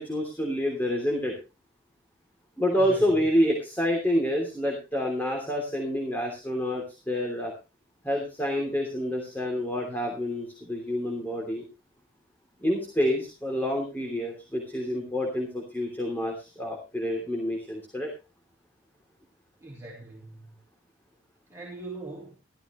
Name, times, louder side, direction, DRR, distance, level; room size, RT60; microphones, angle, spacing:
voice 1, 0.0-1.3 2.6-7.5 8.0-11.6 12.6-18.1, equal, 10° left, 0 dB, 3.1 m, -28 dB
voice 2, 2.7-3.2 19.6-20.6 21.5-22.4, right 2 dB, 15° right, -4 dB, 3.2 m, -41 dB
14.5 x 14.0 x 3.1 m, 0.30 s
head